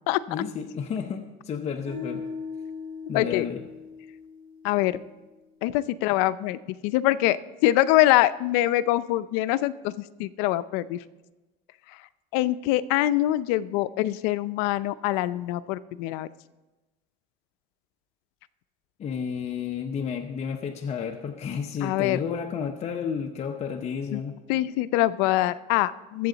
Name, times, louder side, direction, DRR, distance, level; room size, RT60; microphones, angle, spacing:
voice 1, 0.3-2.2 3.1-3.7 19.0-24.4, left 7 dB, 35° left, 3 dB, 0.9 m, -31 dB
sound 1, 1.9-5.0, left 5 dB, 80° right, 4.8 m, -39 dB
voice 2, 3.1-3.5 4.6-5.0 5.6-9.9 10.2-11.0 12.3-16.3 21.8-22.2 24.1-24.2 24.5-26.3, left 15 dB, 85° left, 15 dB, 0.5 m, -24 dB
21.5 x 7.7 x 4.0 m, 1.1 s
cardioid pair, 120°, 19 cm